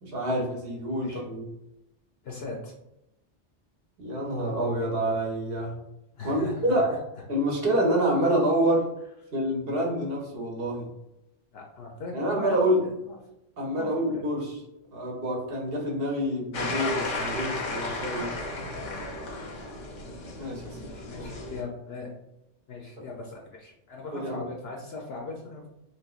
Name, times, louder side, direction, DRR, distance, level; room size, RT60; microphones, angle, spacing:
voice 1, 0.0-1.5 4.0-5.8 6.2-6.9 7.3-8.9 9.3-10.9 12.1-12.8 13.6-14.6 14.9-18.3 20.4-20.8 21.1-21.3 23.0-23.1 24.1-24.4, right 1 dB, 55° right, -1 dB, 1.0 m, -27 dB
voice 2, 2.2-2.7 6.1-7.0 11.5-12.9 13.7-13.9 14.1-14.2 21.1-22.1 22.7-25.7, left 3 dB, 65° left, -1 dB, 0.8 m, -39 dB
sound 1, 16.5-21.6, left 2 dB, 90° left, 1.0 m, -34 dB
3.1 x 2.9 x 2.3 m, 0.87 s
omnidirectional pair, 1.2 m